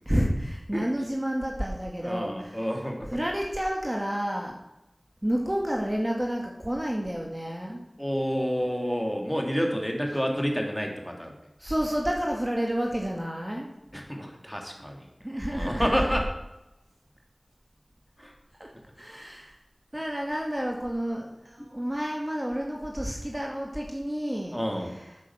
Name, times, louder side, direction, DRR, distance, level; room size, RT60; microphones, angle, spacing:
voice 1, 0.1-2.7 3.1-4.6 5.2-7.8 11.6-13.7 15.2-16.2 18.6-18.7 19.0-19.6 19.9-25.1, equal, 25° right, 0 dB, 2.4 m, -30 dB
voice 2, 2.0-3.1 8.0-11.4 13.9-15.1 15.5-16.3 18.2-18.3 21.6-21.7 24.5-24.9, equal, 5° left, 1 dB, 3.4 m, -29 dB
12.5 x 9.8 x 6.5 m, 0.91 s
wide cardioid pair, 45°, 0 cm